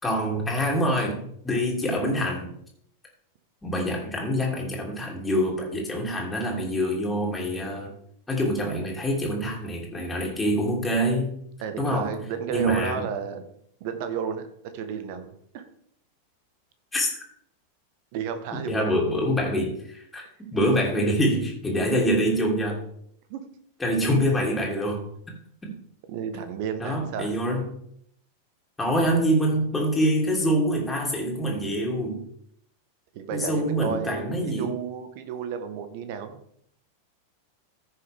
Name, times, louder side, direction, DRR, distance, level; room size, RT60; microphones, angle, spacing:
voice 1, 0.0-2.5 3.6-7.9 8.3-11.3 11.8-12.1 12.5-13.0 16.9-17.2 18.5-20.2 20.5-22.8 23.8-25.0 25.6-25.7 26.8-27.7 28.8-32.2 33.3-34.7, equal, 10° left, -2 dB, 3.1 m, -25 dB
voice 2, 11.6-13.4 13.8-14.5 14.7-15.6 18.1-19.0 23.3-23.4 26.1-27.3 33.1-36.4, right 7 dB, 45° right, 8 dB, 1.4 m, -32 dB
15.0 x 6.5 x 3.6 m, 0.68 s
figure-of-eight pair, 90°, 0 cm